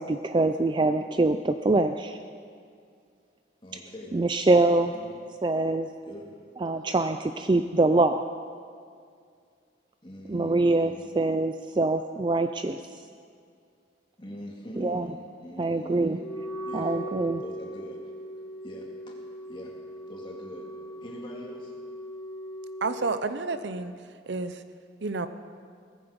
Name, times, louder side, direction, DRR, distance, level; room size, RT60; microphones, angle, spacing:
voice 1, 0.0-2.2 4.1-4.9 5.4-5.9 6.6-8.2 10.3-12.8 14.8-15.2 15.6-16.2 16.7-17.4, right 2 dB, 25° right, 8 dB, 0.3 m, -24 dB
voice 2, 3.6-4.1 4.6-5.1 6.1-6.3 10.0-11.1 14.2-16.2 16.6-16.9 17.4-18.0 18.6-19.1 19.5-19.7 20.1-20.7 21.0-21.7, equal, 25° left, -2 dB, 2.6 m, -43 dB
Wind instrument woodwind instrument, 16.1-23.2, equal, 65° left, 1.9 m, -39 dB
voice 3, 22.8-23.9 24.3-24.6 25.0-25.3, right 3 dB, 70° right, 11 dB, 0.7 m, -30 dB
18.0 x 15.0 x 5.2 m, 2.2 s
head